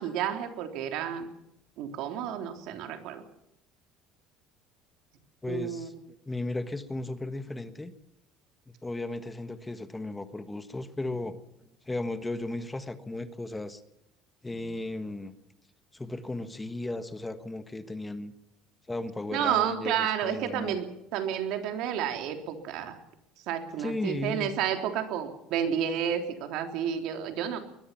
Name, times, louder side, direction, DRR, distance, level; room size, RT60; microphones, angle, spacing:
voice 1, 0.0-1.3 1.8-3.2 5.5-5.9 19.3-20.9 21.1-23.0 23.5-27.6, right 9 dB, 60° right, 5 dB, 3.6 m, -31 dB
voice 2, 5.4-5.9 6.3-7.9 8.7-11.4 11.9-13.8 14.4-15.3 15.9-18.3 18.9-20.8 23.8-24.5, left 2 dB, 10° left, 10 dB, 1.5 m, -35 dB
22.5 x 21.5 x 5.8 m, 0.81 s
cardioid pair, 160°, 0 cm